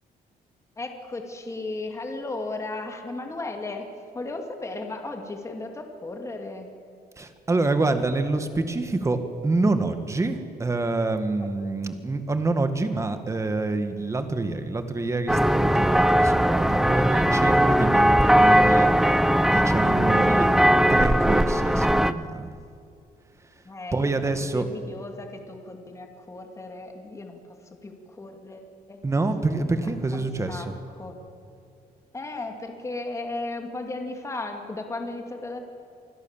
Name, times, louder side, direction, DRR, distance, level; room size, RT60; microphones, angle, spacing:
voice 1, 0.8-3.8 4.1-6.7 11.4-11.5 23.6-29.0 29.5-31.2 32.1-35.6, left 2 dB, 20° left, 4 dB, 2.4 m, -36 dB
voice 2, 7.2-20.5 20.9-22.5 23.9-24.7 29.0-30.8, right 3 dB, 20° right, 8 dB, 1.8 m, -27 dB
sound 1, 15.3-22.1, equal, ahead, 0.5 m, -19 dB
27.5 x 20.5 x 7.4 m, 2.6 s
cardioid pair, 155°, 16 cm